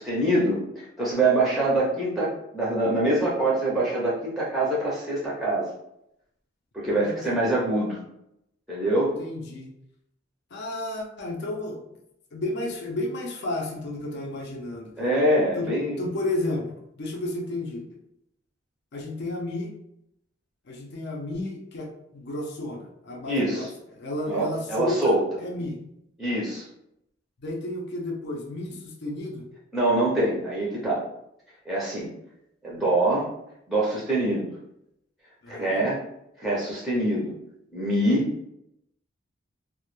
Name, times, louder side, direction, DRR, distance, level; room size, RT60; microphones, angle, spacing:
voice 1, 0.0-5.7 6.7-8.0 8.7-9.2 15.0-16.0 23.3-23.7 24.3-25.2 26.2-26.6 29.7-31.0 31.7-32.1 32.6-33.3 33.7-34.5 35.5-36.0 36.4-37.3 37.7-38.3, right 1 dB, ahead, -6 dB, 0.5 m, -24 dB
voice 2, 7.0-7.5 9.2-9.7 10.5-11.8 12.3-15.1 15.5-17.8 18.9-19.7 20.7-25.8 27.4-29.5 35.4-35.9, left 1 dB, 60° left, -1 dB, 0.5 m, -32 dB
2.1 x 2.0 x 3.0 m, 0.80 s
head